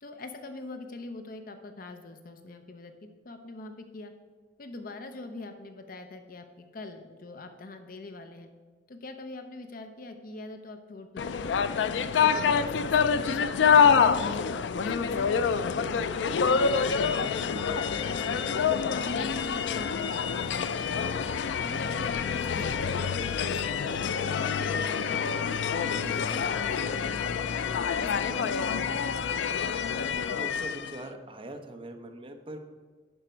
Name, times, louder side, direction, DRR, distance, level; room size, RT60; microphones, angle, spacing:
voice 1, 0.0-4.1 4.6-8.5 8.9-11.6 12.1-17.5 18.0-18.6 18.9-21.1 21.4-27.6 28.0-29.5, left 2 dB, 55° left, 7 dB, 0.7 m, -43 dB
sound 1, 11.2-31.0, left 6 dB, 90° left, 0.4 m, -27 dB
voice 2, 30.1-32.6, right 1 dB, 30° right, 5 dB, 0.9 m, -42 dB
11.0 x 5.1 x 4.5 m, 1.5 s
head